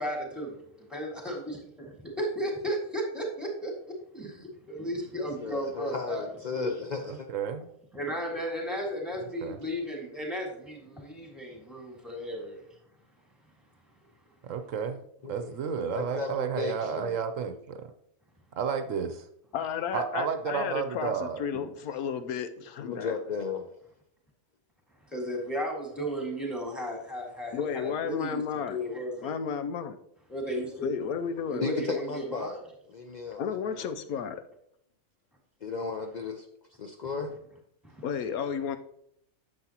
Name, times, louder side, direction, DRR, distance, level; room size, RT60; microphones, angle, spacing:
voice 1, 0.0-1.4 2.2-3.7 4.1-6.2 6.5-6.7 7.9-12.6 25.1-28.4 28.7-29.3 30.3-30.9 31.5-32.6 37.8-38.0, equal, ahead, 0 dB, 1.8 m, -34 dB
voice 2, 5.4-7.3 15.2-17.2 22.8-23.7 31.6-32.6 32.9-33.9 35.6-36.4 36.8-37.4, left 5 dB, 65° left, 4 dB, 0.4 m, -35 dB
voice 3, 7.0-7.7 9.4-9.6 14.4-17.8 18.6-19.3 19.9-21.4, right 7 dB, 65° right, 8 dB, 1.0 m, -32 dB
voice 4, 19.5-23.1 27.5-28.8 29.2-30.0 30.8-31.7 33.4-34.4 38.0-38.8, left 7 dB, 85° left, 10 dB, 1.1 m, -33 dB
9.6 x 7.1 x 2.9 m, 0.73 s
omnidirectional pair, 1.5 m